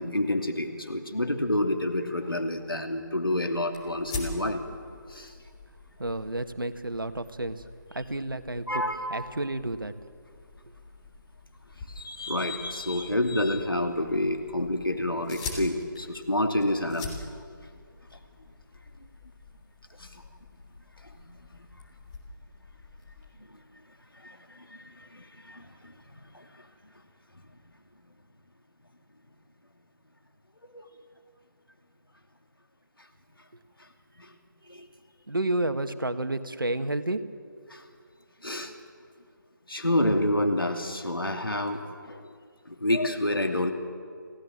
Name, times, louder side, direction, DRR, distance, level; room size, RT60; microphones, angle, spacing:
voice 1, 0.0-4.6 5.1-5.3 8.7-9.0 12.0-17.1 20.0-20.2 21.3-21.4 24.2-25.9 26.3-26.5 30.7-30.9 34.2-34.3 34.7-34.9 37.7-37.8 38.4-38.7 39.7-42.2 42.7-43.7, left 1 dB, 85° left, 5 dB, 2.7 m, -28 dB
sound 1, 3.7-23.3, left 3 dB, 20° left, 3.4 m, -45 dB
voice 2, 6.0-7.6 7.9-8.8 9.1-9.9 35.3-37.2, right 1 dB, 75° right, 9 dB, 1.7 m, -30 dB
29.0 x 17.0 x 7.5 m, 2.2 s
figure-of-eight pair, 155°, 11 cm